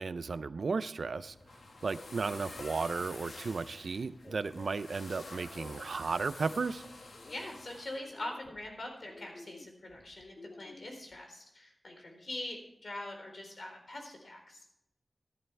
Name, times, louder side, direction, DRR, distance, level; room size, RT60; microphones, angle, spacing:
voice 1, 0.0-1.3 1.8-6.8, right 4 dB, 75° right, 14 dB, 0.5 m, -34 dB
door hinge, 1.1-8.0, left 3 dB, 85° left, 1.8 m, -49 dB
sound 1, 4.2-6.5 7.0-7.5 8.0-11.2, left 2 dB, 40° left, 0.8 m, -53 dB
voice 2, 7.3-14.7, left 1 dB, 60° left, 2 dB, 4.0 m, -43 dB
14.5 x 11.0 x 3.4 m, 0.81 s
wide cardioid pair, 80°, 0 cm